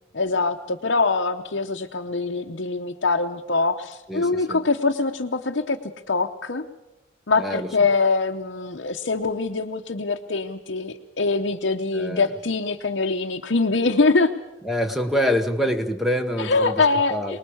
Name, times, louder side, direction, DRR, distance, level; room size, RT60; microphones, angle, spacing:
voice 1, 0.1-6.7 7.3-14.3 16.4-17.4, left 3 dB, 60° left, 2 dB, 0.9 m, -23 dB
voice 2, 4.1-4.6 7.4-7.7 11.9-12.3 14.6-17.4, equal, ahead, 6 dB, 1.0 m, -26 dB
25.0 x 20.0 x 7.1 m, 1.1 s
head